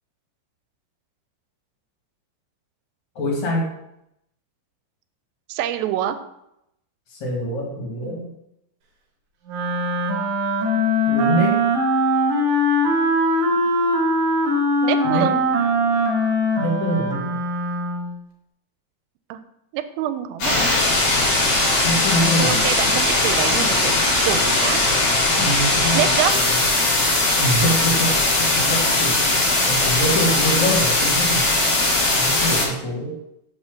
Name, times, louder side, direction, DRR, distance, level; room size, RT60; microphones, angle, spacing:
voice 1, 3.2-3.7 7.1-8.3 11.1-11.7 15.0-15.4 16.6-17.4 21.8-22.7 25.4-26.0 26.3-26.6 27.4-28.2 28.5-29.2 29.6-31.4 32.1-33.2, equal, 60° left, -2 dB, 2.5 m, -24 dB
voice 2, 5.5-6.2 14.8-15.4 19.3-19.4 19.7-20.7 22.4-23.9 24.2-24.8 25.9-26.3, right 11 dB, 90° right, 11 dB, 2.4 m, -25 dB
Wind instrument woodwind instrument, 9.5-18.1, equal, 70° right, 2.3 m, -21 dB
sound 1, 20.4-32.6, left 2 dB, 40° left, 2.3 m, -19 dB
5.4 x 4.3 x 5.9 m, 0.82 s
omnidirectional pair, 4.1 m